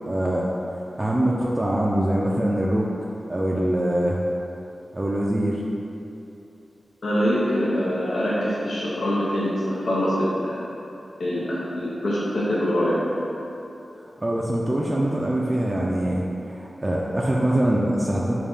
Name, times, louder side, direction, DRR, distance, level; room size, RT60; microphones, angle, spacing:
voice 1, 0.1-0.4 0.7-2.9 3.3-4.2 4.9-5.6 14.2-16.2 16.5-18.3, right 1 dB, 30° right, -4 dB, 0.3 m, -23 dB
voice 2, 7.0-9.5 9.9-10.6 11.2-13.0, equal, 80° left, -7 dB, 0.5 m, -24 dB
3.4 x 2.3 x 3.8 m, 2.8 s
cardioid pair, 45°, 0 cm